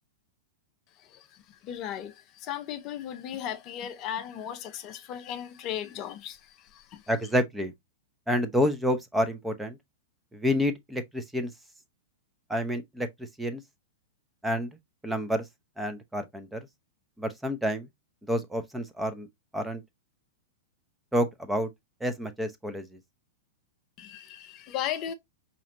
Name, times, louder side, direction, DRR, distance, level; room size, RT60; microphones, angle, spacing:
voice 1, 1.6-7.0 24.0-25.1, left 10 dB, 35° left, 0.5 m, -36 dB
voice 2, 7.1-7.7 8.3-9.8 10.3-11.5 12.5-13.6 14.4-14.7 15.0-15.4 15.8-16.6 17.2-17.9 18.3-19.3 19.5-19.8 21.1-21.7 22.0-22.9, equal, 5° right, 0.6 m, -28 dB
5.0 x 2.9 x 2.5 m
figure-of-eight pair, 100°, 0 cm